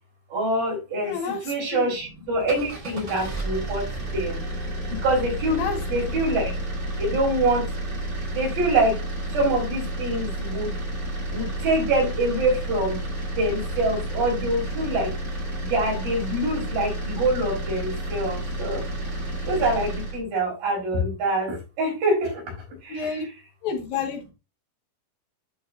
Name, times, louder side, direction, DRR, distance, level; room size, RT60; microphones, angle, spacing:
voice 1, 0.3-4.4 4.9-6.5 6.9-7.7 8.3-9.0 9.3-10.8 11.3-13.0 13.3-15.1 15.6-18.8 19.4-23.3, right 1 dB, 70° right, -2 dB, 5.7 m, -25 dB
voice 2, 1.0-1.9 5.6-5.8 6.1-6.2 22.9-23.2 23.6-24.3, left 5 dB, 70° left, 2 dB, 3.5 m, -30 dB
sound 1, 2.3-20.2, right 1 dB, 25° right, 1.9 m, -31 dB
12.0 x 4.7 x 2.7 m, 0.29 s
omnidirectional pair, 4.3 m